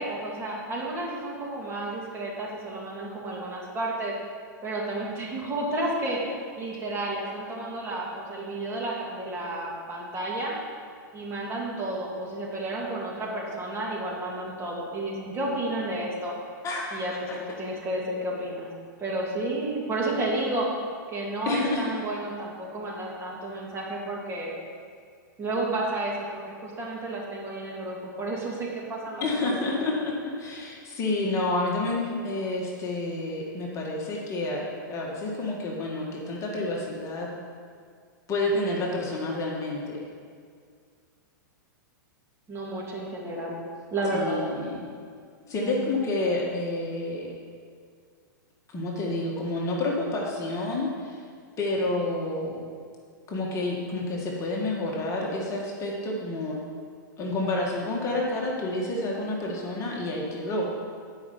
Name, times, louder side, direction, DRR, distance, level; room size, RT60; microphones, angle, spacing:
voice 1, 0.0-4.1 4.6-10.5 11.1-16.3 16.9-18.7 19.0-20.7 21.1-24.6 25.4-29.5 42.5-43.6 43.9-44.6, right 2 dB, 25° right, -4 dB, 2.7 m, -31 dB
voice 2, 16.6-17.4 21.5-22.0 29.2-37.3 38.3-40.0 44.1-44.9 45.5-47.3 48.7-51.2 51.6-52.6 53.3-56.6 57.2-60.7, left 2 dB, 30° left, -2 dB, 1.8 m, -29 dB
11.5 x 5.7 x 7.1 m, 2.1 s
hypercardioid pair, 120°, 11 cm